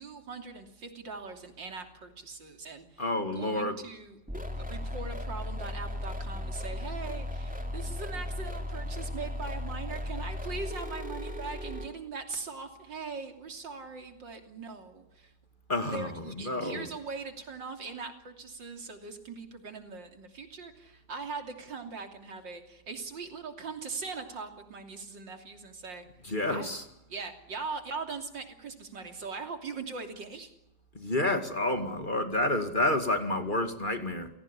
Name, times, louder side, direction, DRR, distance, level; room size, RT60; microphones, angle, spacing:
voice 1, 0.0-3.0 3.3-15.3 15.9-26.0 26.5-26.7 27.1-30.5, right 4 dB, 85° right, 6 dB, 3.7 m, -41 dB
voice 2, 3.0-3.8 15.7-16.9 26.2-26.8 30.9-34.3, left 1 dB, 25° left, 7 dB, 2.3 m, -29 dB
sound 1, 4.3-11.9, left 1 dB, 5° right, 2.6 m, -36 dB
29.5 x 17.5 x 10.0 m, 0.85 s
omnidirectional pair, 1.9 m